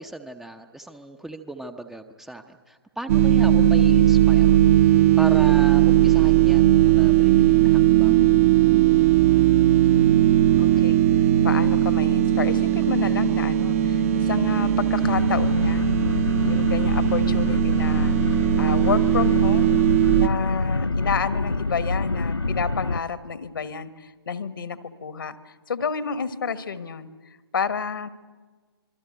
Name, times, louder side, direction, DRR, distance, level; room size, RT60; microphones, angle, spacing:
voice 1, 0.0-4.8 5.2-8.2, right 1 dB, 5° right, 6 dB, 0.7 m, -37 dB
sound 1, 3.1-20.3, right 12 dB, 35° right, 0.9 m, -18 dB
voice 2, 9.9-11.0 11.4-15.9 16.4-18.2 18.6-19.7 20.1-27.1 27.5-28.1, left 6 dB, 55° left, 13 dB, 1.5 m, -30 dB
sound 2, 15.0-23.0, left 3 dB, 80° left, 0.7 m, -26 dB
26.0 x 22.5 x 7.9 m, 1.4 s
figure-of-eight pair, 130°, 13 cm